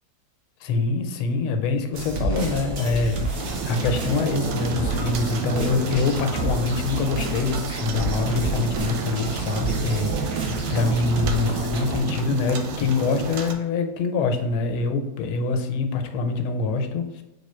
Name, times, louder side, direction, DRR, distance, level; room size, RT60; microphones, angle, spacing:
voice 1, 0.6-17.2, left 4 dB, 90° left, 6 dB, 1.5 m, -25 dB
sound 1, 1.9-12.0, right 2 dB, 60° right, 1.2 m, -29 dB
sound 2, 3.4-13.5, right 5 dB, 80° right, 1.4 m, -32 dB
3.6 x 3.4 x 4.3 m, 1.0 s
omnidirectional pair, 2.3 m